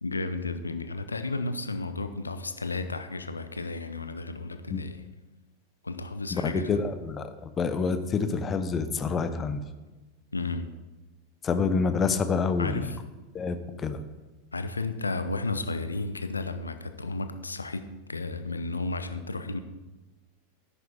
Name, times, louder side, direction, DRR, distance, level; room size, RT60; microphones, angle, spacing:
voice 1, 0.0-5.0 5.8-6.7 10.3-10.7 12.6-13.0 14.5-19.6, left 3 dB, 80° left, 10 dB, 0.7 m, -33 dB
voice 2, 6.3-9.6 11.4-12.9 13.3-14.0, left 5 dB, 25° left, 11 dB, 0.9 m, -27 dB
13.0 x 10.5 x 3.5 m, 1.2 s
figure-of-eight pair, 90°, 0 cm